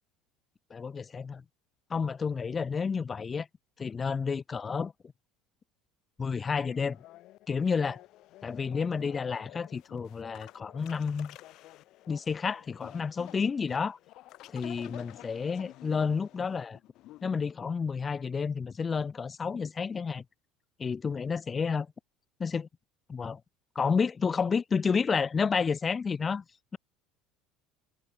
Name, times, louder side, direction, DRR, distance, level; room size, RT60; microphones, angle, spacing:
voice 1, 0.7-1.4 1.9-3.5 3.8-4.9 6.2-7.0 7.5-8.0 8.4-11.4 12.1-14.0 14.5-16.8 17.2-20.2 20.8-21.9 22.4-22.7 23.1-23.4 23.8-26.4, left 5 dB, 30° left, 0.6 m, -30 dB
sound 1, 6.5-17.3, left 16 dB, 60° left, 2.8 m, -51 dB
hypercardioid pair, 85°, 0 cm